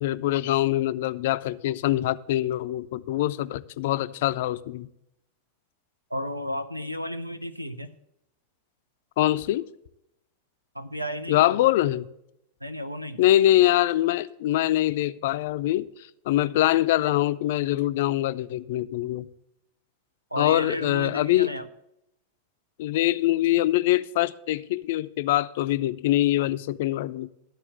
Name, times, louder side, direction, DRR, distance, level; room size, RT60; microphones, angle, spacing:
voice 1, 0.0-4.9 9.2-9.7 11.3-12.1 13.2-19.3 20.4-21.5 22.8-27.3, left 14 dB, 55° left, 15 dB, 0.4 m, -24 dB
voice 2, 6.1-7.9 10.8-11.6 12.6-13.2 20.3-21.6, equal, 90° right, 11 dB, 0.6 m, -33 dB
12.0 x 4.4 x 7.9 m, 0.81 s
figure-of-eight pair, 90°, 0 cm